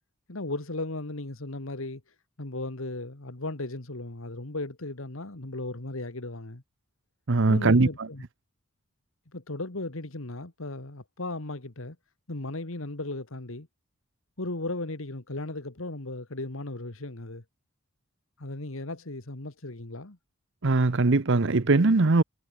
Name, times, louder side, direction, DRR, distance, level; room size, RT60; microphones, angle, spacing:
voice 1, 0.3-2.0 2.4-6.6 7.5-8.2 9.3-12.0 12.3-13.7 14.4-17.4 18.4-20.2, left 2 dB, 65° left, 1.9 m, -36 dB
voice 2, 7.3-8.1 20.6-22.2, right 3 dB, 55° right, 0.8 m, -21 dB
head